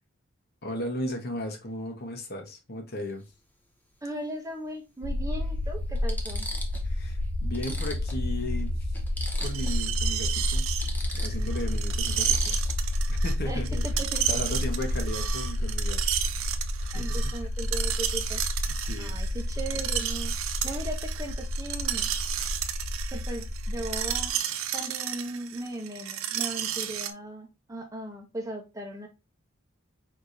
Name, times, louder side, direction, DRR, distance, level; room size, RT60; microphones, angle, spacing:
voice 1, 0.6-3.2 6.8-8.9 9.4-10.7 11.1-12.6 13.1-14.0 14.3-16.0 16.8-17.3 18.7-19.2 19.7-19.8, left 1 dB, 50° left, 1.1 m, -36 dB
sound 1, 3.0-3.2 4.7-4.8 5.4-5.5 5.9-6.9 7.2-7.3 7.5-9.8 10.1-10.3 10.6-13.0 15.6-15.8 16.1-16.5, left 1 dB, 10° left, 0.9 m, -40 dB
voice 2, 4.0-6.5 13.4-14.4 16.9-18.4 19.0-20.3 20.6-22.1 23.1-24.4 24.7-29.1, right 1 dB, 15° right, 0.8 m, -37 dB
sound 2, 5.0-24.3, left 1 dB, 90° left, 0.8 m, -30 dB
Screech, 9.4-27.1, right 10 dB, 85° right, 0.5 m, -32 dB
4.8 x 3.6 x 2.7 m
head